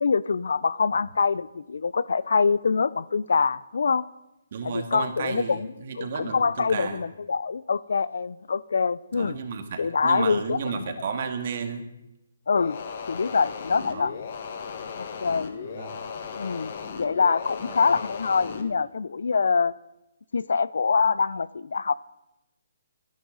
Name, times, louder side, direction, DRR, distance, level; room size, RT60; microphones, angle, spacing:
voice 1, 0.0-4.0 4.6-5.7 6.0-9.4 9.8-10.9 12.5-12.8 13.1-14.1 15.0-15.5 16.4-19.7 20.3-21.9, left 5 dB, 75° left, 0.5 m, -25 dB
voice 2, 4.5-7.0 9.1-11.8 13.8-14.1 15.7-16.0 17.8-17.9, right 5 dB, 45° right, 2.1 m, -33 dB
sound 1, 12.5-18.7, left 6 dB, 45° left, 1.6 m, -36 dB
26.0 x 10.5 x 4.0 m
hypercardioid pair, 160°, 0 cm